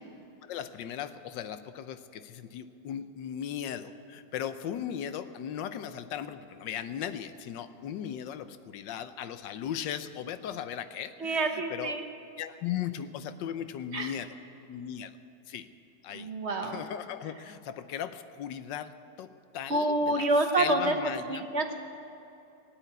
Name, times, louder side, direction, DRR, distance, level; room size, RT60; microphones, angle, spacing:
voice 1, 0.4-12.0 12.4-14.3 14.7-15.1 15.5-15.7 16.0-16.3 16.6-20.3 20.5-21.5, left 9 dB, 80° left, 12 dB, 1.4 m, -37 dB
voice 2, 11.2-12.0 13.9-14.1 16.1-16.8 19.7-20.9 21.3-21.7, right 2 dB, 45° right, 5 dB, 1.2 m, -28 dB
17.5 x 9.1 x 8.4 m, 2.7 s
omnidirectional pair, 2.0 m